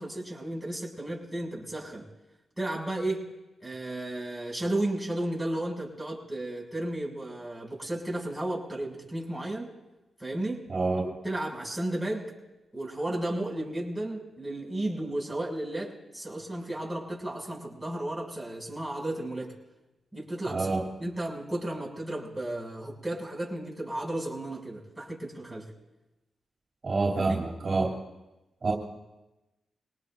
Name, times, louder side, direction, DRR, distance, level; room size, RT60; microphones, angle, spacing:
voice 1, 0.0-2.0 2.6-3.3 3.6-9.7 10.2-10.6 11.2-12.3 12.7-19.5 20.1-25.7 27.2-27.4, right 1 dB, ahead, -4 dB, 7.1 m, -33 dB
voice 2, 10.7-11.1 20.5-20.8 26.8-27.9 28.6-28.7, right 3 dB, 45° right, -2 dB, 3.0 m, -27 dB
25.0 x 19.0 x 2.7 m, 1.0 s
supercardioid pair, 50°, 0 cm